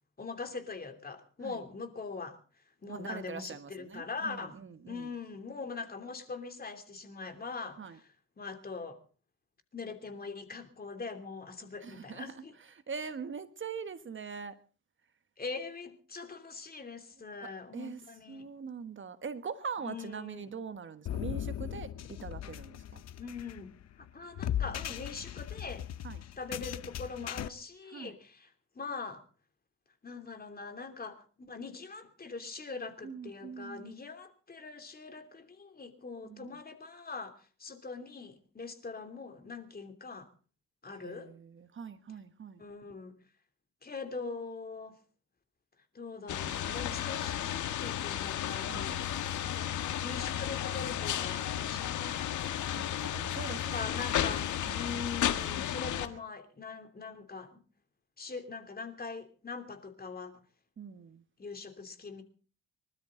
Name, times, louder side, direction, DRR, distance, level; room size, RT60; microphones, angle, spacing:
voice 1, 0.2-2.4 2.8-4.6 4.8-9.0 9.7-12.5 15.4-18.5 19.8-20.5 23.2-23.7 24.0-25.9 26.4-29.2 30.0-40.3 40.8-41.3 42.6-43.1 43.8-45.0 45.9-49.0 50.0-52.3 53.7-57.6 58.2-60.4 61.4-62.2, left 4 dB, 30° left, 7 dB, 3.0 m, -42 dB
voice 2, 2.9-5.1 7.8-8.0 11.8-14.5 17.4-23.0 26.0-26.2 27.9-28.2 33.0-33.9 36.2-36.5 41.0-42.6 48.6-49.0 52.7-54.1 54.6-55.1 60.8-61.2, right 6 dB, 40° right, 10 dB, 1.3 m, -43 dB
sound 1, 21.1-27.5, left 10 dB, 60° left, 0.9 m, -38 dB
sound 2, 46.3-56.1, left 10 dB, 75° left, 1.7 m, -33 dB
25.0 x 13.0 x 3.9 m, 0.38 s
cardioid pair, 90°, 30 cm